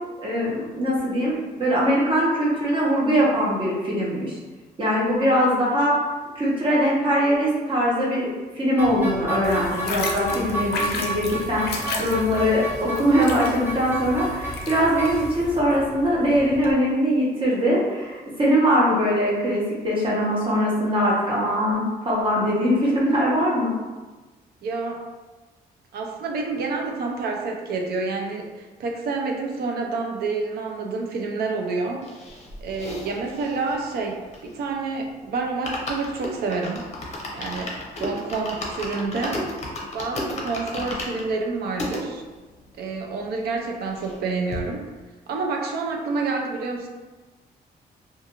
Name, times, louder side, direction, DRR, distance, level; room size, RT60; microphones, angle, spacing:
voice 1, 0.2-4.4 4.8-5.9 6.3-8.3 8.6-11.7 12.0-23.7, equal, 30° right, -5 dB, 0.9 m, -22 dB
sound 1, 8.8-16.7, right 2 dB, 10° right, 0.5 m, -33 dB
sound 2, 9.4-15.6, left 4 dB, 85° left, 0.4 m, -33 dB
voice 2, 11.7-12.1 24.6-25.0 25.9-32.0 32.6-36.8 37.3-37.7 38.0-39.4 39.9-42.2 42.8-44.8 45.3-46.9, right 3 dB, 75° right, 2 dB, 0.5 m, -28 dB
sound 3, 32.0-34.8 35.1-35.2 35.5-42.0 42.6-42.7 42.9-43.0 43.3-44.2 44.5-44.6, left 1 dB, 40° left, 0.6 m, -34 dB
2.5 x 2.5 x 2.9 m, 1.2 s
cardioid pair, 120°, 16 cm